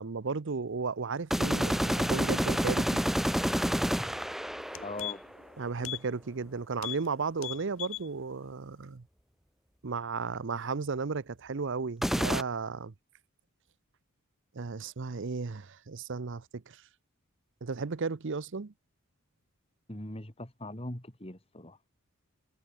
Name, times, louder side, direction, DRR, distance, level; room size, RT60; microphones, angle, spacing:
voice 1, 0.0-3.0 5.6-9.1 9.8-12.9 14.5-16.8 17.6-18.7, right 4 dB, 55° right, 0.7 m, -34 dB
sound 1, 1.3-5.3 12.0-12.4, equal, ahead, 0.7 m, -29 dB
sound 2, 4.1-4.3 4.6-5.4 5.8-6.1 6.4-6.5 6.8-7.1 7.4-8.1 8.5-8.6, left 14 dB, 65° left, 2.7 m, -39 dB
voice 2, 4.8-5.2 19.9-21.8, left 1 dB, 25° left, 2.9 m, -40 dB
head